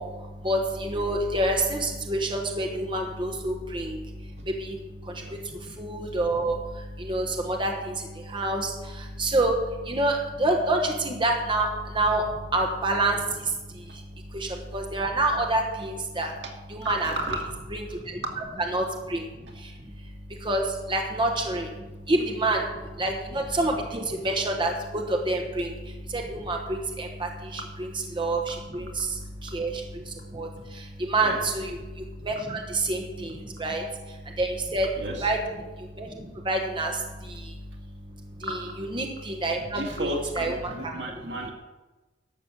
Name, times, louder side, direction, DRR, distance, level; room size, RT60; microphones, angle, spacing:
voice 1, 0.0-16.3 16.7-17.1 17.7-18.2 18.7-34.9 35.2-40.1 40.3-40.9, right 2 dB, 30° right, 2 dB, 1.2 m, -28 dB
voice 2, 16.8-17.5 17.9-18.3 22.2-22.3 31.2-31.4 35.0-35.3 39.6-41.5, right 1 dB, 80° right, 0 dB, 2.3 m, -34 dB
12.0 x 7.1 x 7.4 m, 1.2 s
head